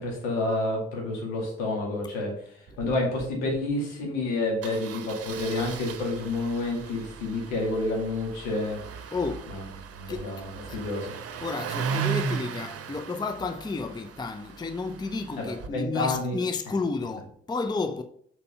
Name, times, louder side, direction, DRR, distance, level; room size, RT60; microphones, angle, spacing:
voice 1, 0.0-2.3 2.8-8.8 9.5-9.6 9.9-11.1 15.4-16.4, left 2 dB, 70° left, 2.2 m, -29 dB
Engine starting, 2.7-2.9 3.2-3.3 3.5-3.7 4.6-15.7, right 7 dB, 45° right, 0.9 m, -36 dB
voice 2, 9.1-9.6 10.1-10.3 10.7-10.8 11.4-18.0, left 4 dB, 15° left, 0.6 m, -32 dB
6.9 x 4.5 x 5.2 m
figure-of-eight pair, 40°, 34 cm